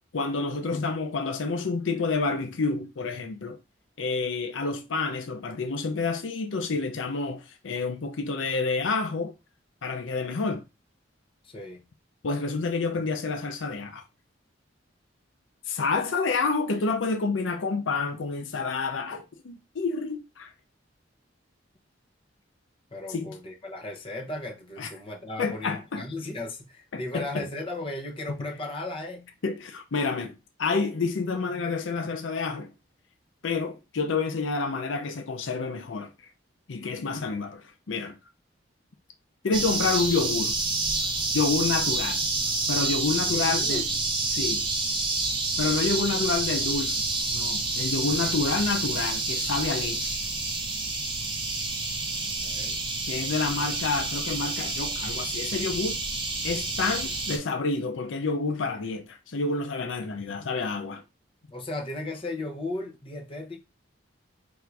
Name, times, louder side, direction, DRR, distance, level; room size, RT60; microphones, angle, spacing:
voice 1, 0.1-3.6 4.0-9.3 9.8-10.6 12.2-14.0 15.7-20.5 23.1-23.3 24.8-24.9 25.4-26.0 26.9-27.5 29.4-32.7 33.4-36.1 36.7-38.1 39.4-40.6 41.3-42.2 42.7-43.8 44.3-44.7 45.6-50.1 53.1-56.0 56.4-61.0, left 4 dB, 85° left, 0.6 m, -29 dB
voice 2, 11.4-11.8 22.9-29.3 43.3-43.8 52.1-52.2 52.4-52.8 61.5-63.6, left 2 dB, 30° left, 0.8 m, -36 dB
sound 1, 39.5-57.4, right 3 dB, 25° right, 0.8 m, -28 dB
3.5 x 2.6 x 4.5 m
head